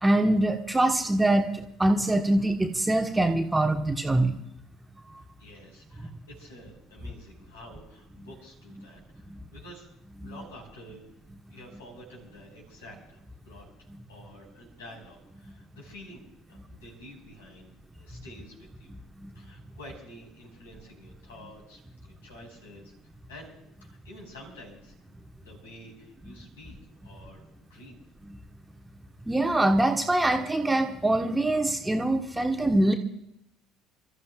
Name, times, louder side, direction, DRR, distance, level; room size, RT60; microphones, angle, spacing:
voice 1, 0.0-4.4 10.2-10.3 19.2-19.3 28.3-28.4 29.3-32.9, right 1 dB, 10° right, 4 dB, 1.3 m, -24 dB
voice 2, 5.4-9.9 10.2-11.0 11.5-19.0 19.3-22.9 23.3-23.5 23.8-24.9 25.4-26.7 27.0-28.0, equal, 75° left, -1 dB, 5.5 m, -49 dB
29.5 x 14.0 x 2.4 m, 0.80 s
figure-of-eight pair, 60°, 0 cm